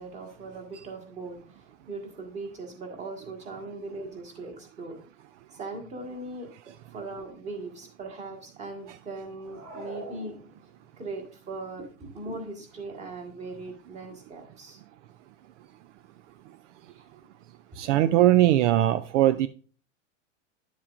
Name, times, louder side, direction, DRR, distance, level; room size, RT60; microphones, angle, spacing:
voice 1, 0.0-5.0 5.5-6.5 6.9-10.4 11.0-14.8 17.0-17.1 17.7-17.8, right 3 dB, 20° right, 1.6 m, -39 dB
sound 1, 9.3-11.0, right 2 dB, 40° right, 2.4 m, -43 dB
voice 2, 17.8-19.5, right 13 dB, 65° right, 0.5 m, -20 dB
10.0 x 7.3 x 2.5 m
supercardioid pair, 155°, 39 cm